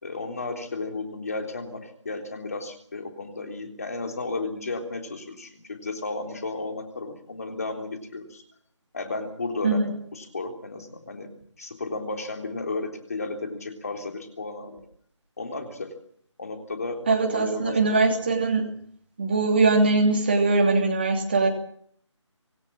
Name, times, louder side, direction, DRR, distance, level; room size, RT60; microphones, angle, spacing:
voice 1, 0.0-8.4 8.9-11.3 11.6-14.8 15.4-15.9 16.4-18.0, left 3 dB, 30° left, 4 dB, 3.5 m, -33 dB
voice 2, 17.1-18.7 19.2-21.5, right 3 dB, 20° right, 2 dB, 2.9 m, -21 dB
25.5 x 17.0 x 7.5 m, 0.63 s
figure-of-eight pair, 180°, 16 cm